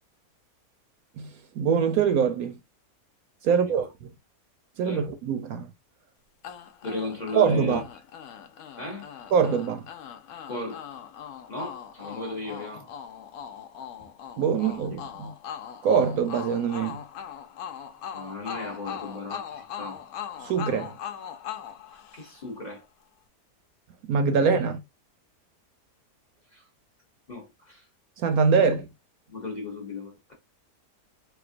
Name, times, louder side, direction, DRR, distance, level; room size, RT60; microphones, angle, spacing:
voice 1, 1.6-2.6 3.4-4.1 4.8-5.7 7.4-7.8 9.3-9.9 14.4-15.3 15.8-17.0 20.4-20.9 24.1-24.8 28.2-28.9, right 6 dB, 70° right, 1.0 m, -23 dB
voice 2, 3.4-3.9 4.8-5.1 6.8-7.8 8.8-9.1 10.5-10.8 11.5-12.9 14.5-14.8 18.1-20.0 21.9-22.8 26.5-26.6 27.3-27.8 28.6-28.7 29.3-30.3, left 2 dB, 35° left, 0.7 m, -36 dB
sound 1, 6.4-22.6, left 9 dB, 70° left, 1.0 m, -40 dB
4.3 x 2.3 x 2.4 m
omnidirectional pair, 1.7 m